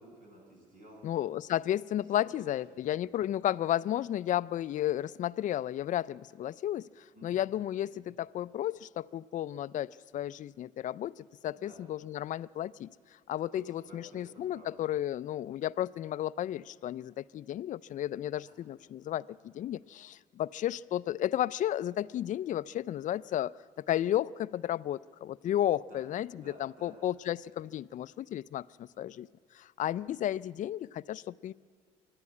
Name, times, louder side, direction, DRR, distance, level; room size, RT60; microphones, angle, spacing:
voice 1, 0.0-1.0 2.0-2.3 2.7-3.0 7.1-7.4 11.6-11.8 13.5-14.8 18.4-18.5 25.9-26.0 26.4-26.9, equal, 50° right, 0 dB, 7.3 m, -54 dB
voice 2, 1.0-12.9 13.3-29.3 29.5-31.5, left 12 dB, 50° left, 15 dB, 0.4 m, -33 dB
25.5 x 11.0 x 9.6 m, 2.1 s
cardioid pair, 110°, 17 cm